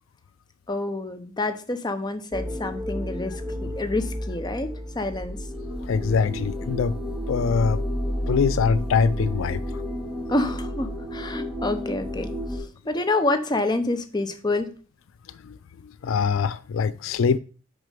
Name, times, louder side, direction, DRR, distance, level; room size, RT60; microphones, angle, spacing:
voice 1, 0.7-3.3 3.6-5.4 10.3-12.3 12.9-14.7, left 2 dB, 20° left, 0.9 m, -27 dB
sound 1, 2.3-12.6, equal, 5° left, 1.9 m, -31 dB
voice 2, 5.7-7.0 7.3-8.0 8.3-9.6 15.4-15.6 15.8-17.4, left 5 dB, 80° left, 0.4 m, -23 dB
6.4 x 5.1 x 5.2 m
head